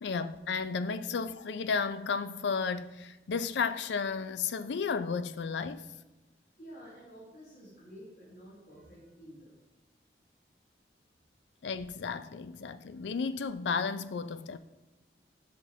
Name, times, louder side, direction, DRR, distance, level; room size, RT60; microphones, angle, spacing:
voice 1, 0.0-5.9 11.6-14.6, left 5 dB, 85° left, 0.4 m, -33 dB
voice 2, 6.6-9.5, equal, 65° left, 3.0 m, -50 dB
12.5 x 6.1 x 2.7 m
head